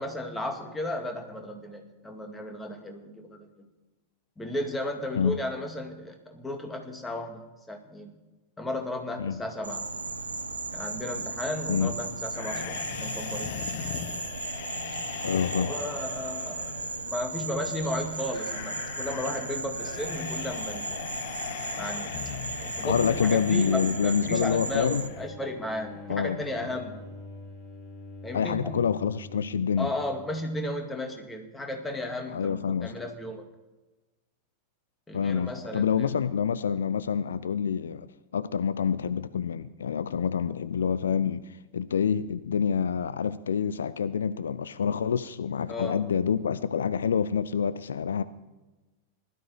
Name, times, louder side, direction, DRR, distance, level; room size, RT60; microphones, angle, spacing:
voice 1, 0.0-3.7 4.4-8.1 8.6-9.9 10.7-13.6 15.6-21.1 21.8-27.0 28.2-28.7 29.8-33.5 35.1-36.2 45.7-46.0, left 1 dB, 10° left, 4 dB, 2.1 m, -34 dB
Insect, 9.6-25.1, right 3 dB, 80° right, 0.9 m, -36 dB
sound 1, 12.3-25.3, left 11 dB, 50° left, 0.9 m, -40 dB
voice 2, 15.2-15.7 22.8-25.1 26.1-26.4 28.3-29.9 32.3-32.9 35.1-48.2, left 7 dB, 65° left, 15 dB, 0.4 m, -27 dB
sound 2, 25.1-30.5, left 2 dB, 25° left, 2.5 m, -45 dB
16.0 x 12.0 x 4.7 m, 1.1 s
figure-of-eight pair, 90°, 0 cm